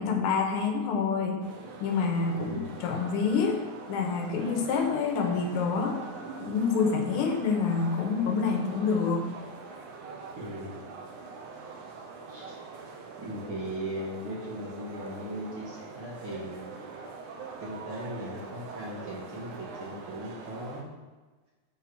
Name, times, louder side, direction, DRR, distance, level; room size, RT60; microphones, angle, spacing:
voice 1, 0.0-1.4 1.8-3.6 3.9-6.0 6.4-9.3, left 5 dB, 90° left, 3 dB, 2.4 m, -27 dB
sound 1, 1.4-20.8, right 4 dB, 70° right, 1.3 m, -43 dB
voice 2, 2.4-2.8 10.4-10.9 12.3-12.6 13.2-16.8 17.6-20.9, equal, 55° right, -4 dB, 1.7 m, -38 dB
7.3 x 3.7 x 6.0 m, 1.3 s
omnidirectional pair, 3.4 m